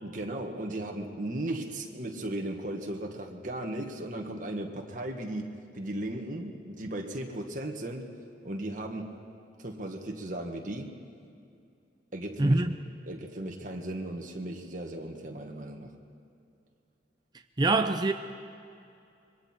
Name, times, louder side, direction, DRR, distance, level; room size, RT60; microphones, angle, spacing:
voice 1, 0.0-8.1 8.4-9.2 9.6-11.0 12.1-12.6 13.1-15.9, right 1 dB, 45° right, 2 dB, 1.9 m, -36 dB
voice 2, 12.4-12.7 17.6-18.1, right 2 dB, 25° right, 6 dB, 0.5 m, -24 dB
25.5 x 22.5 x 4.6 m, 2.5 s
head